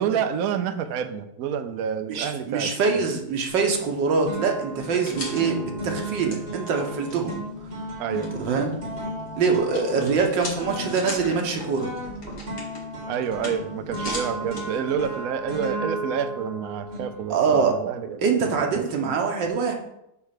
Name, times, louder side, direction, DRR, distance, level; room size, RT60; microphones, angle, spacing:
voice 1, 0.0-3.0 8.0-8.3 10.0-10.1 13.1-18.2 18.7-19.1, right 8 dB, 65° right, 8 dB, 0.9 m, -29 dB
voice 2, 2.1-7.4 8.4-8.7 9.4-11.9 17.3-17.7 18.2-19.8, right 5 dB, 85° right, 2 dB, 1.8 m, -24 dB
sound 1, 3.2-15.2, left 2 dB, 55° left, 2.1 m, -41 dB
sound 2, 3.5-3.9 4.3-17.7, right 1 dB, 35° right, 2.7 m, -35 dB
8.2 x 3.3 x 6.5 m, 0.81 s
omnidirectional pair, 1.9 m